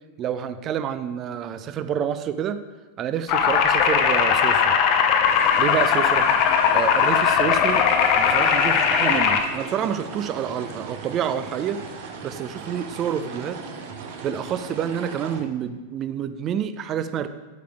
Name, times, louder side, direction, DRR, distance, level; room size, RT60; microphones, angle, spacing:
voice 1, 0.2-2.6 3.0-4.8 5.6-6.3 6.7-7.9 8.2-11.8 12.2-13.6 14.2-17.3, right 9 dB, 30° right, 11 dB, 0.5 m, -28 dB
sound 1, 3.3-9.4, left 7 dB, 40° left, 0.7 m, -19 dB
sound 2, 5.2-15.4, right 5 dB, 50° right, 0.8 m, -38 dB
9.2 x 8.7 x 2.3 m, 1.3 s
figure-of-eight pair, 90°, 0 cm